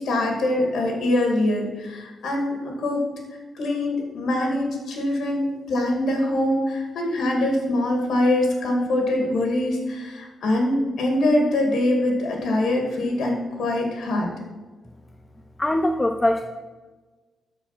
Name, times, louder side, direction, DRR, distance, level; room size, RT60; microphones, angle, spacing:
voice 1, 0.0-3.0 3.5-14.3, left 1 dB, 65° left, 1 dB, 2.3 m, -23 dB
voice 2, 15.6-16.4, left 1 dB, 15° left, 6 dB, 0.4 m, -21 dB
13.0 x 4.6 x 5.9 m, 1.3 s
wide cardioid pair, 160°, 0 cm